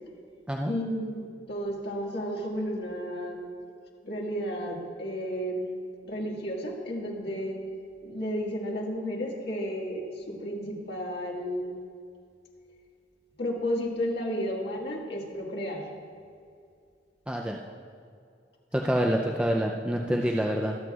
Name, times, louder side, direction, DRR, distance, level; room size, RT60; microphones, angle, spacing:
voice 1, 0.6-3.5 4.0-5.8 6.1-7.6 8.0-11.8 13.4-15.9 19.1-19.2 20.1-20.3, equal, 65° left, -2 dB, 1.8 m, -32 dB
voice 2, 17.3-17.6 18.7-20.8, equal, 5° right, 0 dB, 0.4 m, -27 dB
22.5 x 7.8 x 2.4 m, 2.3 s
head